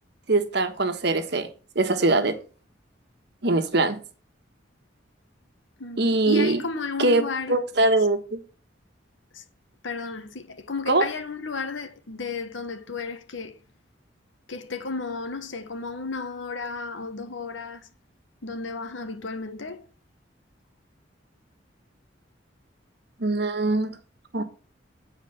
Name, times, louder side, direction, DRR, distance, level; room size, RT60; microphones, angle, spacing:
voice 1, 0.3-1.5 1.7-2.4 3.4-4.0 6.0-6.6 7.0-7.2 7.5-8.4 10.9-11.0 23.2-24.0 24.3-24.4, right 2 dB, 60° right, 1.3 m, -22 dB
voice 2, 5.8-7.6 9.3-9.4 9.8-13.6 14.5-17.9 18.4-19.9, left 4 dB, 85° left, 1.3 m, -33 dB
9.7 x 4.9 x 6.6 m
head